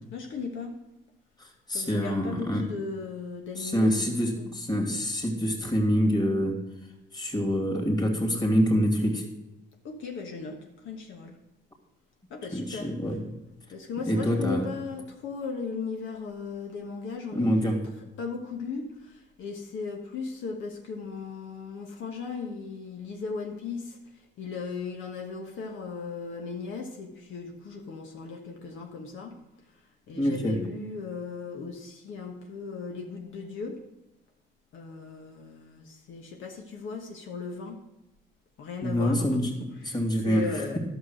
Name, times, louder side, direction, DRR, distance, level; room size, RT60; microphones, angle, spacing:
voice 1, 0.1-0.7 1.7-4.5 9.8-10.6 10.8-11.4 12.3-12.9 13.7-17.8 18.2-24.0 24.4-29.3 30.1-33.8 34.7-37.8 38.6-39.4 39.9-40.0 40.2-40.8, left 4 dB, 80° left, 2 dB, 1.4 m, -37 dB
voice 2, 1.4-2.6 3.6-6.6 7.1-9.2 12.5-13.2 14.1-14.7 17.3-17.8 30.1-30.6 38.8-40.8, equal, 20° left, 2 dB, 2.6 m, -26 dB
11.5 x 6.3 x 6.4 m, 0.99 s
cardioid pair, 90°, 20 cm